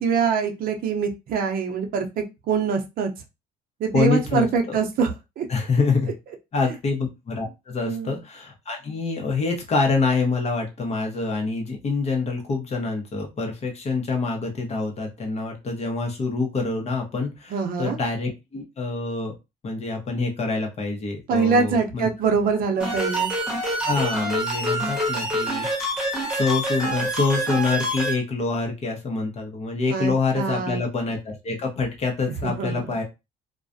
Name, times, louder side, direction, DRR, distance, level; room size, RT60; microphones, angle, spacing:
voice 1, 0.0-3.1 3.8-5.5 7.8-8.1 17.5-18.0 21.3-23.3 29.9-30.8 32.4-32.9, right 5 dB, 60° right, 3 dB, 0.6 m, -24 dB
voice 2, 3.9-4.8 5.5-6.1 6.5-19.3 19.6-22.1 23.8-25.9 26.3-33.0, left 4 dB, 40° left, 2 dB, 0.8 m, -26 dB
sound 1, 22.8-28.1, right 1 dB, 5° right, 1.1 m, -26 dB
2.4 x 2.1 x 2.5 m, 0.25 s
cardioid pair, 110°, 17 cm